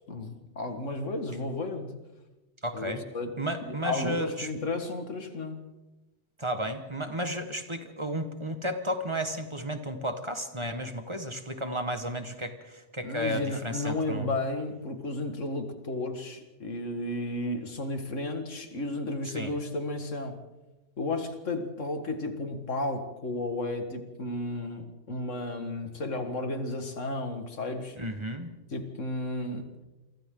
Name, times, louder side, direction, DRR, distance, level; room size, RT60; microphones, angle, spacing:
voice 1, 0.1-1.9 2.7-3.3 3.7-5.7 13.0-20.4 21.0-28.0 28.7-29.7, left 2 dB, 85° left, 6 dB, 2.3 m, -33 dB
voice 2, 2.6-3.0 3.4-4.5 6.4-14.3 19.3-19.5 27.9-28.5, equal, 25° right, 6 dB, 1.6 m, -33 dB
29.0 x 24.0 x 3.9 m, 1.1 s
omnidirectional pair, 1.2 m